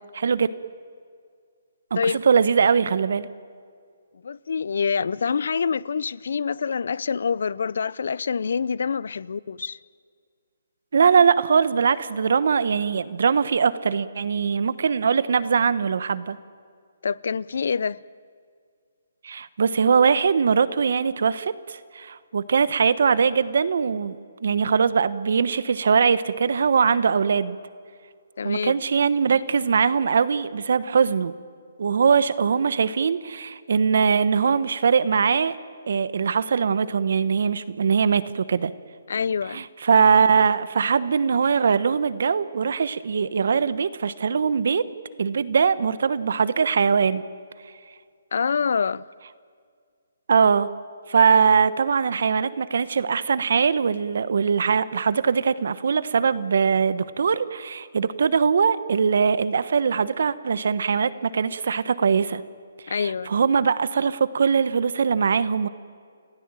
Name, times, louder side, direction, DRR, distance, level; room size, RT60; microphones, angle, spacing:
voice 1, 0.2-0.5 1.9-3.3 10.9-16.4 19.2-27.6 28.4-31.3 31.8-35.6 35.9-38.7 39.5-44.8 45.2-47.2 50.3-50.7 51.1-62.4 62.9-65.7, right 6 dB, 65° right, 1.1 m, -21 dB
voice 2, 4.2-9.8 17.0-18.0 28.4-28.7 39.1-39.6 48.3-49.0 62.9-63.3, left 6 dB, 65° left, 0.6 m, -26 dB
29.0 x 16.5 x 9.0 m
hypercardioid pair, 155°, 0 cm